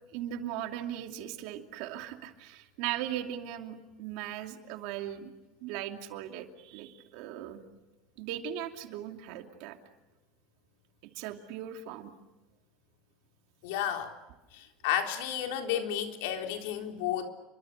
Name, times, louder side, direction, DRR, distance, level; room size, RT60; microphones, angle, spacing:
voice 1, 0.1-5.3 5.6-7.6 8.2-9.8 11.1-12.1, right 11 dB, 60° right, 5 dB, 2.7 m, -38 dB
voice 2, 13.6-14.1 14.5-17.3, left 10 dB, 80° left, 3 dB, 3.8 m, -32 dB
29.5 x 24.0 x 6.7 m, 1.1 s
cardioid pair, 160°, 0 cm